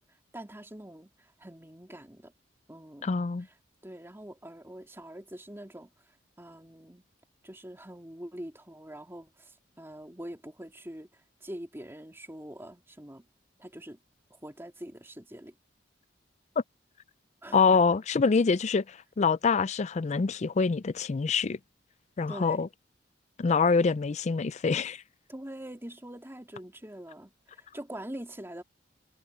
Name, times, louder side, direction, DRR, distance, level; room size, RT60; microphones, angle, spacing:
voice 1, 0.3-2.3 2.7-3.1 3.8-5.9 6.4-7.0 7.4-13.3 13.6-14.0 14.3-15.5 17.4-17.8 22.3-22.7 25.3-28.6, right 1 dB, 15° right, 3.1 m, -44 dB
voice 2, 3.0-3.5 17.5-21.6 22.2-22.7 23.4-25.0, left 5 dB, 35° left, 0.4 m, -25 dB
head